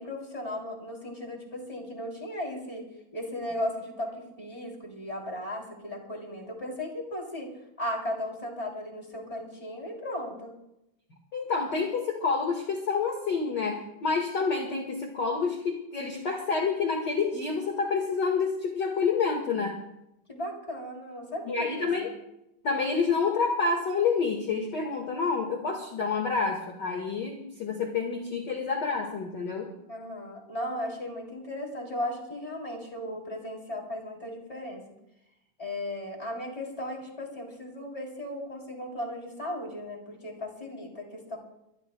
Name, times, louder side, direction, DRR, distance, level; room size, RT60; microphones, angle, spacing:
voice 1, 0.0-2.8 3.1-7.5 7.8-10.5 20.3-22.1 29.9-34.8 35.6-41.4, left 1 dB, 10° left, 0 dB, 3.1 m, -36 dB
voice 2, 11.3-19.8 21.5-22.1 22.6-29.7, left 5 dB, 40° left, 1 dB, 2.0 m, -28 dB
24.0 x 18.0 x 2.3 m, 0.84 s
omnidirectional pair, 3.5 m